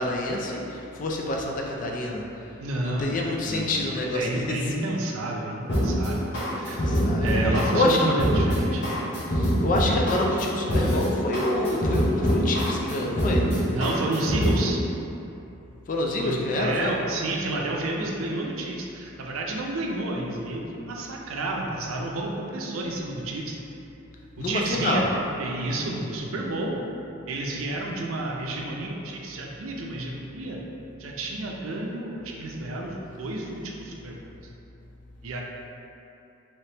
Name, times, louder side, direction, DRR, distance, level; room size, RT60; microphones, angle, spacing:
voice 1, 0.0-2.2 2.8-4.7 6.5-7.2 7.7-8.2 9.3-13.4 15.9-16.9 24.4-25.1, left 1 dB, 40° left, -1 dB, 0.3 m, -27 dB
voice 2, 2.6-6.3 6.6-6.9 7.2-8.9 13.7-14.8 16.2-23.6 24.4-25.1 25.4-26.8 27.3-30.6 31.0-34.3 35.2-35.4, right 2 dB, 85° right, -1 dB, 0.5 m, -30 dB
sound 1, 5.7-14.7, equal, 55° left, 0.8 m, -24 dB
3.3 x 3.0 x 2.8 m, 2.8 s
head